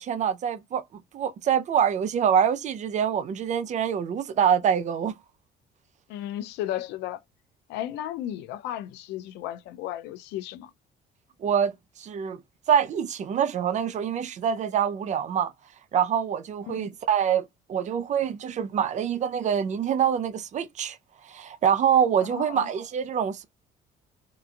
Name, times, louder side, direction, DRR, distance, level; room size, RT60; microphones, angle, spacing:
voice 1, 0.0-5.1 11.4-12.4 12.7-15.5 15.9-21.0 21.2-23.5, right 8 dB, 45° right, 0.5 m, -25 dB
voice 2, 6.1-7.2 7.7-10.7 16.7-16.9 22.2-22.7, left 12 dB, 85° left, 0.4 m, -34 dB
2.9 x 2.5 x 2.2 m
cardioid pair, 110°, 17 cm